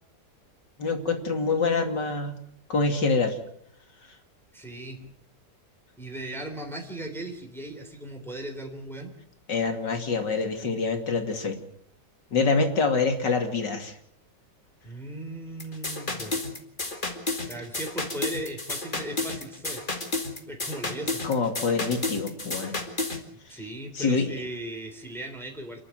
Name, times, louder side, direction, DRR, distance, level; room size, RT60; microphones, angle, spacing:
voice 1, 0.8-2.3 2.7-3.4 9.5-11.6 12.3-14.0 21.2-22.8 23.5-23.6 23.9-24.3, left 4 dB, 80° left, 5 dB, 3.3 m, -26 dB
voice 2, 4.5-5.0 6.0-9.1 14.8-16.4 17.5-19.8 20.4-21.2 23.5-25.8, right 1 dB, ahead, 3 dB, 3.4 m, -37 dB
sound 1, 15.6-23.2, left 2 dB, 30° left, 2.6 m, -32 dB
28.0 x 11.5 x 9.2 m, 0.70 s
omnidirectional pair, 1.9 m